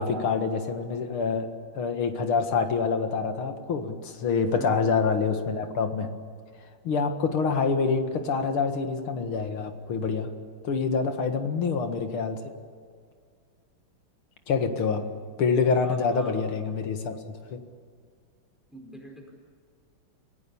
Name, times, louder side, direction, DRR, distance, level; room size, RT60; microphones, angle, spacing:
voice 1, 0.0-1.5 1.7-6.1 6.8-10.3 10.6-12.5 14.5-15.0 15.4-17.2 17.5-17.6, left 5 dB, 85° left, 6 dB, 2.6 m, -26 dB
voice 2, 4.5-4.9 15.8-16.3 18.7-19.3, equal, ahead, 1 dB, 4.9 m, -43 dB
28.0 x 17.5 x 7.2 m, 2.1 s
omnidirectional pair, 2.3 m